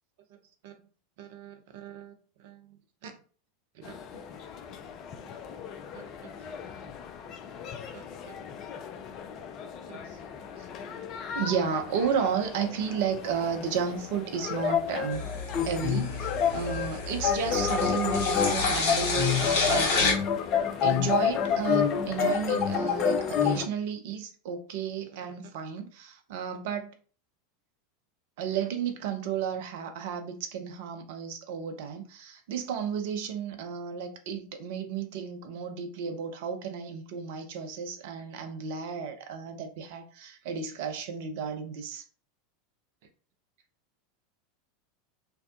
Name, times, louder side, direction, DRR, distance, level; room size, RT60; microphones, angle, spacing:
voice 1, 1.2-2.1 2.4-2.8 3.0-3.1 3.8-3.9 5.9-6.5 7.9-8.4 9.9-10.2 10.6-10.7 11.3-15.2 15.6-20.2 20.8-26.9 28.4-42.0, right 7 dB, 55° right, 0.5 m, -33 dB
sound 1, 3.8-23.7, left 7 dB, 40° left, 0.4 m, -30 dB
sound 2, 15.1-20.1, left 4 dB, 60° left, 0.7 m, -30 dB
2.6 x 2.1 x 2.4 m
figure-of-eight pair, 80°, 0 cm